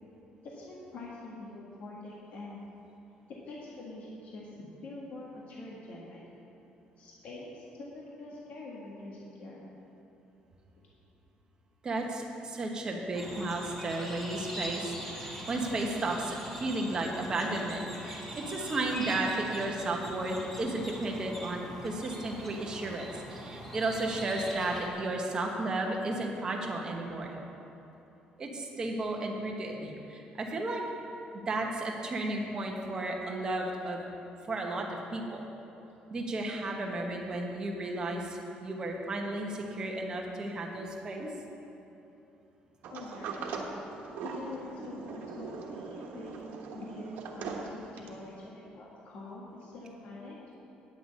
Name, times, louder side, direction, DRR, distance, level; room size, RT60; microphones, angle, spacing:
voice 1, 0.4-2.6 3.5-4.5 4.8-6.2 7.0-9.6 42.9-43.5 44.2-46.4 46.7-50.4, left 2 dB, 55° left, -5 dB, 1.6 m, -45 dB
voice 2, 11.8-27.4 28.4-30.8 31.3-34.0 34.4-35.4 36.1-41.3, right 2 dB, 25° right, 0 dB, 1.2 m, -33 dB
sound 1, 13.1-24.9, equal, 10° left, 2.0 m, -42 dB
Sliding door, 42.8-48.3, right 4 dB, 85° right, 1.2 m, -40 dB
9.7 x 6.1 x 8.3 m, 2.9 s
cardioid pair, 175°, 3 cm